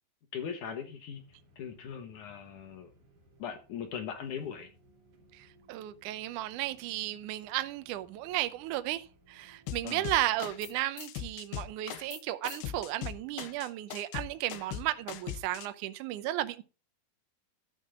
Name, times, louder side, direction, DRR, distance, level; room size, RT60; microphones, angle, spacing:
voice 1, 0.3-1.2 1.6-2.9 3.4-4.7 9.8-10.1, left 7 dB, 60° left, 2.5 m, -39 dB
sound 1, 1.1-10.8, right 1 dB, 55° right, 4.1 m, -63 dB
voice 2, 5.3-16.6, right 15 dB, 80° right, 1.8 m, -34 dB
sound 2, 9.7-10.7 11.0-15.7, left 12 dB, 90° left, 2.7 m, -40 dB
12.0 x 7.4 x 3.6 m
omnidirectional pair, 4.4 m